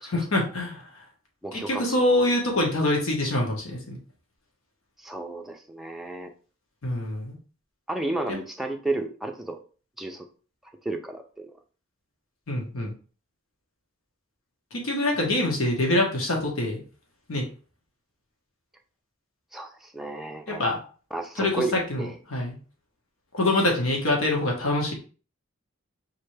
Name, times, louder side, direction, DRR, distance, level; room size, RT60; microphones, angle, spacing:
voice 1, 0.0-0.8 1.5-4.0 6.8-7.3 8.3-8.4 12.5-12.9 14.7-16.8 17.3-17.5 20.5-20.8 21.4-22.6 23.3-24.9, left 1 dB, 80° left, 0 dB, 1.4 m, -25 dB
voice 2, 1.4-2.0 5.0-6.3 7.9-9.6 10.0-10.2 10.8-11.5 19.5-20.6 21.1-21.7 22.0-22.2, right 2 dB, ahead, 2 dB, 0.5 m, -32 dB
4.5 x 3.3 x 3.3 m, 0.38 s
head